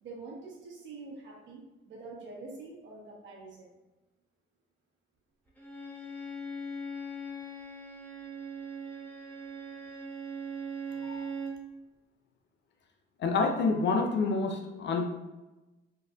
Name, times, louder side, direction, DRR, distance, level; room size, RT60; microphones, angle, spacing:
voice 1, 0.0-3.7, right 3 dB, 70° right, -3 dB, 1.1 m, -45 dB
Bowed string instrument, 5.6-11.6, right 2 dB, 10° left, 0.9 m, -40 dB
voice 2, 13.2-15.0, left 4 dB, 65° left, 3 dB, 0.6 m, -28 dB
3.9 x 2.7 x 2.4 m, 1.1 s
cardioid pair, 90°, 20 cm